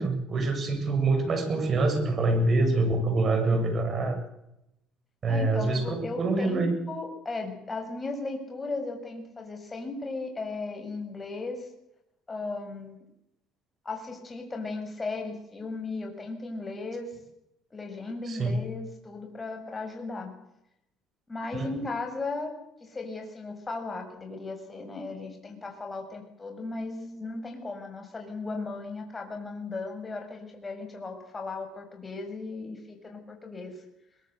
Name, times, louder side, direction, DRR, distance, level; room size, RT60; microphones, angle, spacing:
voice 1, 0.0-4.2 5.2-6.8 18.3-18.5 21.5-21.7, right 2 dB, 40° right, 7 dB, 7.4 m, -25 dB
voice 2, 5.3-11.7 12.3-13.0 13.9-17.1 17.7-20.3 21.3-22.5 22.8-33.7, left 3 dB, 25° left, 3 dB, 7.1 m, -36 dB
23.0 x 21.5 x 8.2 m, 0.86 s
supercardioid pair, 90°, 0 cm